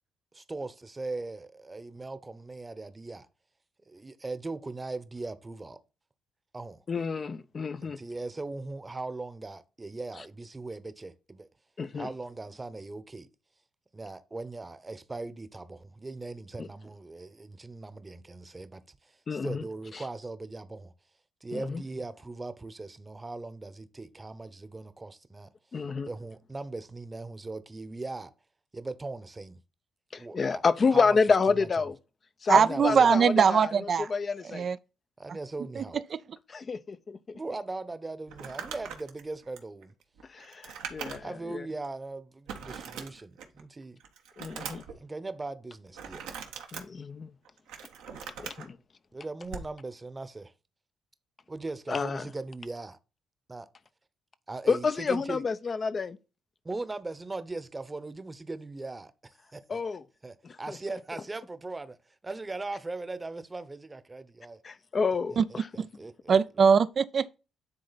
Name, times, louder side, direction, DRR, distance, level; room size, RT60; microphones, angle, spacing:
voice 1, 0.3-3.3 3.9-5.8 6.5-6.8 7.8-11.5 11.9-13.3 13.9-20.9 21.4-25.5 26.1-28.3 28.7-29.6 30.1-30.6 30.9-31.0 31.5-31.7 32.5-33.2 35.2-36.0 37.3-39.9 41.2-44.0 45.0-46.2 49.1-50.5 51.5-53.0 53.5-53.7 54.5-55.4 56.6-59.8 60.2-62.0 62.2-64.6 65.5-66.4, right 3 dB, 25° right, 1.0 m, -39 dB
voice 2, 6.9-8.0 11.8-12.1 16.6-16.7 19.3-19.6 19.9-20.0 21.5-21.8 25.7-26.1 30.1-32.0 32.4-33.7 34.1-34.7 36.5-37.4 40.3-41.7 44.4-44.8 46.7-47.3 48.4-48.8 51.9-52.3 54.7-56.2 59.7-60.0 60.4-60.8 64.6-65.7, left 5 dB, 45° left, 0.6 m, -29 dB
voice 3, 32.5-34.1 34.5-34.8 35.8-35.9 36.1-36.2 65.4-65.5 65.8-65.9 66.3-67.4, right 6 dB, 55° right, 0.5 m, -22 dB
Crumpling crinkling, 38.3-41.4 41.8-41.9 42.5-43.6 44.0-45.0 45.9-46.8 47.4-48.7 49.4-49.7, right 7 dB, 85° right, 1.3 m, -41 dB
9.8 x 3.8 x 4.1 m
supercardioid pair, 55°, 0 cm